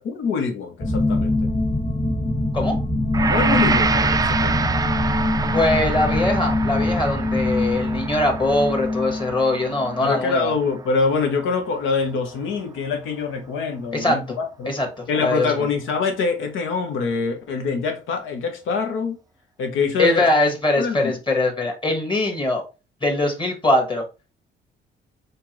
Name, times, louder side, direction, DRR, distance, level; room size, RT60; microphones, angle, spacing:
voice 1, 0.0-1.4 3.3-4.8 10.0-14.7 15.1-19.2 19.6-20.2 20.8-21.2, left 4 dB, 85° left, 1.0 m, -24 dB
sound 1, 0.8-10.3, left 1 dB, 40° left, 1.7 m, -24 dB
Gong, 3.1-11.6 11.9-12.1, right 4 dB, 20° right, 0.3 m, -27 dB
voice 2, 5.5-10.5 13.9-14.2 14.7-14.9 15.2-15.5 20.0-22.7 23.0-24.0, left 2 dB, 25° left, 1.4 m, -21 dB
4.4 x 2.6 x 2.9 m
cardioid pair, 90°, 20 cm